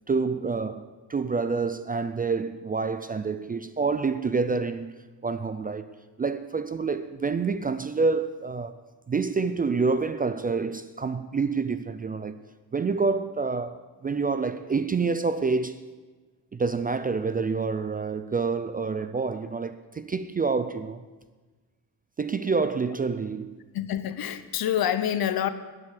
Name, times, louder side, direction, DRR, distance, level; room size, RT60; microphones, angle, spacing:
voice 1, 0.1-5.0 5.2-5.9 6.2-8.7 9.1-12.4 12.7-15.9 16.5-21.0 22.2-23.6, right 4 dB, 25° right, 0.4 m, -27 dB
voice 2, 23.7-25.5, left 10 dB, 60° left, 0.9 m, -27 dB
11.5 x 8.5 x 8.2 m
cardioid pair, 145°, 41 cm